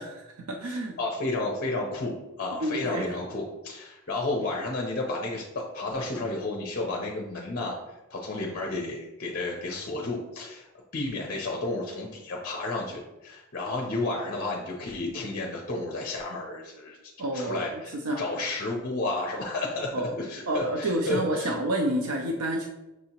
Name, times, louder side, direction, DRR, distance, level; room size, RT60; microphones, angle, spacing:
voice 1, 0.0-1.0 2.6-3.1 17.2-18.2 19.9-20.1 20.5-22.7, right 1 dB, 70° right, 2 dB, 0.5 m, -29 dB
voice 2, 0.6-7.8 8.1-17.0 17.3-21.5, left 2 dB, 40° left, 0 dB, 0.6 m, -32 dB
6.1 x 2.8 x 2.8 m, 1.0 s
head